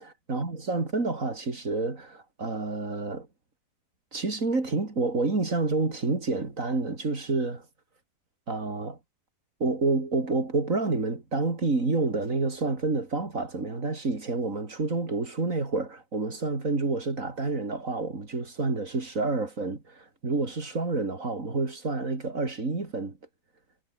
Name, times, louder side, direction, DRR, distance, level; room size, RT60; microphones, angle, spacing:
voice 1, 0.0-3.3 4.1-7.6 8.5-9.0 9.6-23.1, right 3 dB, 50° right, 4.0 m, -29 dB
omnidirectional pair, 1.8 m